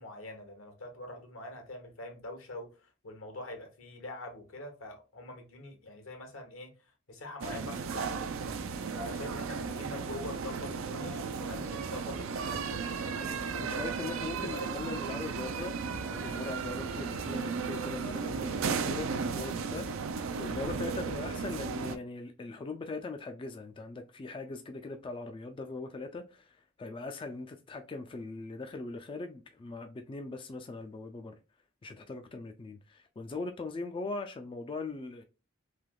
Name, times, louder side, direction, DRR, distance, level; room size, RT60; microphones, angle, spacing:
voice 1, 0.0-6.7 7.1-8.3 8.9-13.9 14.3-14.7, left 1 dB, 80° left, 1.1 m, -44 dB
sound 1, 7.4-22.0, right 5 dB, 75° right, 0.4 m, -35 dB
voice 2, 13.2-19.9 20.1-31.4 31.8-35.2, left 3 dB, 25° left, 0.3 m, -40 dB
3.3 x 2.9 x 2.3 m
head